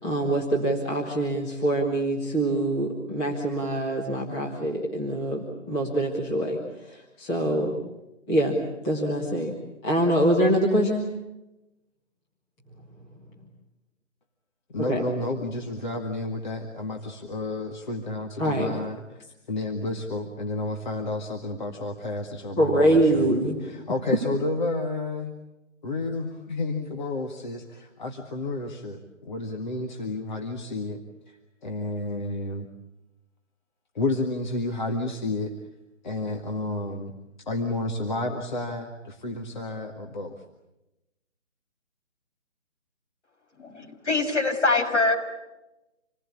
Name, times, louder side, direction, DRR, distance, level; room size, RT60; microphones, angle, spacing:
voice 1, 0.0-6.6 6.9-7.8 8.3-9.5 9.8-11.0 14.9-15.0 18.4-18.7 22.6-23.6, right 1 dB, 10° left, -3 dB, 1.7 m, -24 dB
voice 2, 14.7-25.3 25.8-32.7 34.0-35.5 36.0-37.1 37.5-40.3, left 2 dB, 35° left, 2 dB, 1.9 m, -31 dB
voice 3, 43.6-45.1, left 3 dB, 65° left, 2 dB, 6.9 m, -24 dB
28.0 x 19.5 x 8.5 m, 0.97 s
hypercardioid pair, 170°, 37 cm